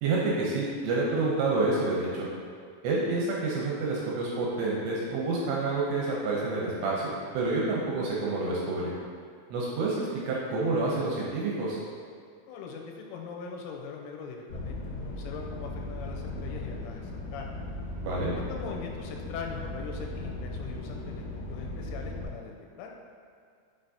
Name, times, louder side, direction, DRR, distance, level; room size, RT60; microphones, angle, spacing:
voice 1, 0.0-2.3 2.8-8.9 9.5-11.8 18.0-18.3, right 3 dB, 75° right, -4 dB, 2.7 m, -28 dB
voice 2, 12.5-17.5 18.3-22.5 22.8-22.9, left 5 dB, 90° left, 1 dB, 3.1 m, -41 dB
sound 1, 14.5-22.2, left 2 dB, 70° left, 2.2 m, -37 dB
6.7 x 5.9 x 2.8 m, 2.3 s
omnidirectional pair, 5.6 m